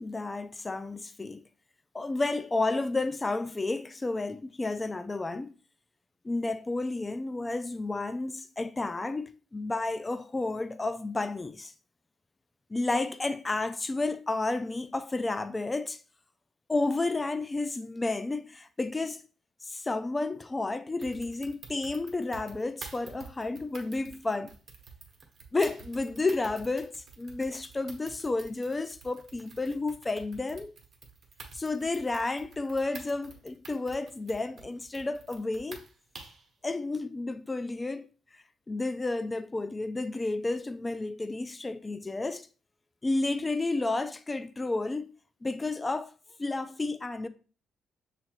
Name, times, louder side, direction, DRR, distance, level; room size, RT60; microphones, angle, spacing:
voice 1, 0.0-1.4 1.9-5.5 6.2-11.7 12.7-16.0 16.7-19.2 19.6-24.5 25.5-30.7 31.5-35.8 36.6-38.1 38.3-42.5 43.0-45.1 45.4-46.1 46.4-47.3, left 2 dB, 20° left, 0.3 m, -31 dB
sound 1, 21.0-36.5, right 4 dB, 50° right, 1.0 m, -49 dB
6.4 x 2.4 x 3.0 m
cardioid pair, 90°, 0 cm